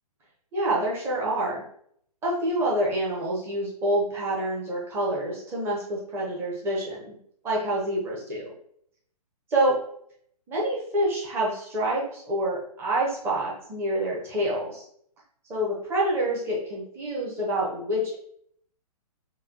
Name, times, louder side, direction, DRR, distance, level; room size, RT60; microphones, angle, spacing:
voice 1, 0.5-1.6 2.2-7.2 7.4-8.5 9.5-9.8 10.5-14.8 15.5-18.2, right 1 dB, 10° right, -4 dB, 0.9 m, -27 dB
4.9 x 2.3 x 2.9 m, 0.66 s
figure-of-eight pair, 125°, 20 cm